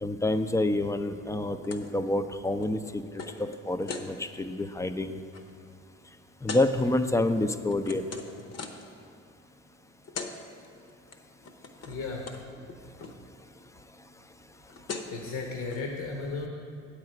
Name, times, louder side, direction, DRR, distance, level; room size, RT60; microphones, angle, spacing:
voice 1, 0.0-5.2 6.4-8.0, left 2 dB, 10° left, 9 dB, 0.4 m, -28 dB
sound 1, 1.6-1.9 2.2-4.1 4.6-4.8 5.1-5.4 6.5-6.7 7.3-8.9 9.8-9.9 10.0-10.3 10.6-11.1 11.4-12.0 12.3-12.4 12.7-13.2 14.4-14.5 14.7-15.2 15.7-15.8, left 4 dB, 55° left, 0.9 m, -40 dB
voice 2, 11.9-12.3 15.1-16.5, left 3 dB, 75° left, 0 dB, 1.1 m, -34 dB
8.7 x 4.9 x 7.6 m, 2.3 s
cardioid pair, 90°, 30 cm